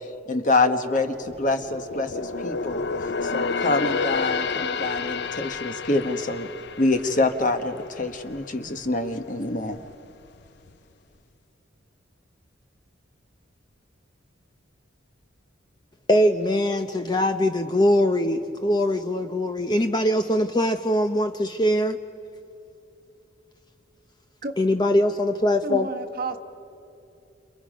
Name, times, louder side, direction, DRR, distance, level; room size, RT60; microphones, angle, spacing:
voice 1, 0.0-6.5 6.8-9.8, left 2 dB, 40° left, 7 dB, 1.3 m, -26 dB
sound 1, 1.1-8.5 8.9-9.1 9.6-10.4 10.7-10.8, left 4 dB, 55° left, 0.6 m, -30 dB
voice 2, 16.1-22.0 24.6-25.9, left 1 dB, 20° left, 6 dB, 0.7 m, -22 dB
voice 3, 25.6-26.4, right 2 dB, 45° right, 6 dB, 1.3 m, -31 dB
30.0 x 28.5 x 5.2 m, 2.8 s
head